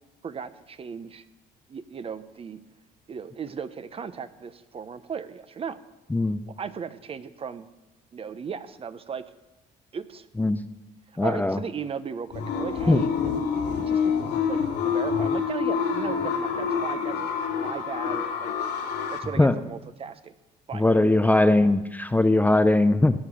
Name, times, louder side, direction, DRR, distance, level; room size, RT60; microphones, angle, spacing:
voice 1, 0.2-1.2 1.7-2.6 3.1-5.8 6.5-7.7 8.1-9.3 9.9-10.3 11.2-13.1 13.5-14.2 14.5-17.3 17.6-18.6 19.1-20.3 20.7-20.9, right 6 dB, 35° right, 13 dB, 0.8 m, -36 dB
voice 2, 11.2-11.6 12.9-13.0 19.4-19.5 20.7-23.1, left 2 dB, 10° left, 11 dB, 0.5 m, -20 dB
sound 1, 12.3-19.2, left 6 dB, 85° left, 2.2 m, -27 dB
17.0 x 8.6 x 6.2 m, 1.1 s
cardioid pair, 110°, 17 cm